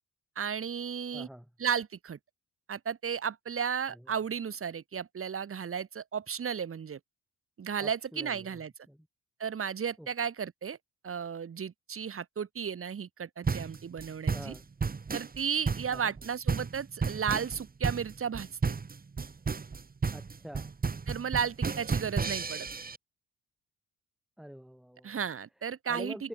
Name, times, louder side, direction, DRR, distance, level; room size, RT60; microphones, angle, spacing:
voice 1, 0.4-1.3 1.6-2.2 2.7-7.0 7.6-8.7 9.4-10.8 11.0-14.5 15.1-18.5 21.1-22.7 25.0-26.3, right 7 dB, 45° right, 3.7 m, -34 dB
voice 2, 1.1-1.5 3.9-4.1 7.8-9.1 10.0-10.1 14.3-14.7 15.9-16.1 20.1-20.7 24.4-25.2 25.9-26.3, equal, ahead, 4.3 m, -46 dB
sound 1, 13.4-23.0, right 5 dB, 30° right, 2.7 m, -32 dB
cardioid pair, 90°, 30 cm